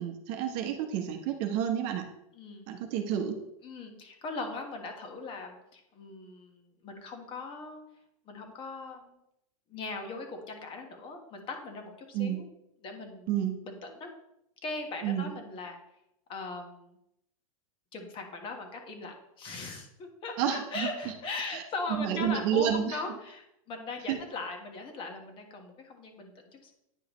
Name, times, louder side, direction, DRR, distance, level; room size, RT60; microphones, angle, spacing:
voice 1, 0.0-2.1 2.7-3.4 12.1-12.4 13.3-13.5 15.0-15.3 20.4-20.9 21.5-21.6 22.0-23.0 24.1-24.2, right 9 dB, 45° right, 5 dB, 0.9 m, -30 dB
voice 2, 2.3-2.7 3.6-7.8 8.2-9.2 9.7-12.4 12.8-13.3 13.6-14.1 14.6-15.8 16.3-17.0 17.9-26.7, left 3 dB, 30° left, 3 dB, 1.3 m, -39 dB
9.9 x 4.8 x 3.1 m, 0.80 s
supercardioid pair, 140°, 19 cm